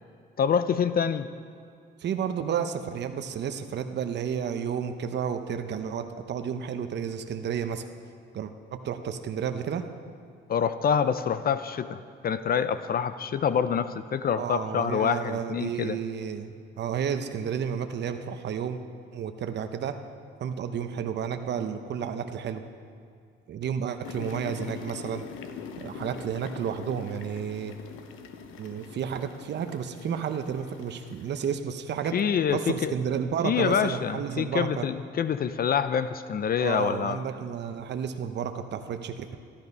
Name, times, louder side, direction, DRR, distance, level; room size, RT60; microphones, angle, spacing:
voice 1, 0.4-1.3 10.5-16.0 32.1-32.9 33.4-37.2, left 7 dB, 50° left, 12 dB, 0.5 m, -26 dB
voice 2, 2.0-7.9 8.3-9.8 14.4-18.8 19.1-20.0 20.4-22.6 23.5-25.3 25.8-27.7 28.6-32.1 32.5-34.9 36.6-39.4, right 7 dB, 60° right, 7 dB, 0.9 m, -31 dB
sound 1, 24.0-31.5, left 6 dB, 90° left, 0.9 m, -43 dB
13.5 x 12.0 x 5.4 m, 2.3 s
cardioid pair, 90°, 20 cm